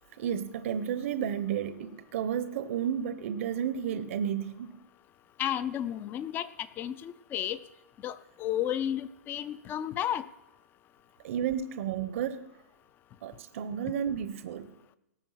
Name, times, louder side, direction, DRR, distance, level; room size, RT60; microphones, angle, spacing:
voice 1, 0.2-4.8 11.2-12.4 13.2-14.8, right 8 dB, 55° right, 12 dB, 0.8 m, -32 dB
voice 2, 5.4-6.5 6.8-7.6 8.0-10.2, left 11 dB, 25° left, 17 dB, 0.5 m, -32 dB
18.0 x 7.0 x 5.7 m, 0.91 s
hypercardioid pair, 140°, 8 cm